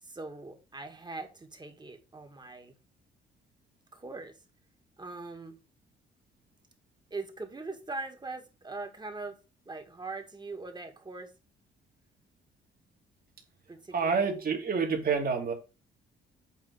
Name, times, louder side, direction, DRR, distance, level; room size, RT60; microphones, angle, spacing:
voice 1, 0.0-2.7 3.9-4.4 5.0-5.6 7.1-9.4 9.7-11.3 13.7-14.3, right 3 dB, 20° right, 1.9 m, -41 dB
voice 2, 13.9-15.5, right 5 dB, 50° right, 2.5 m, -28 dB
8.4 x 3.5 x 6.4 m
cardioid pair, 90°, 20 cm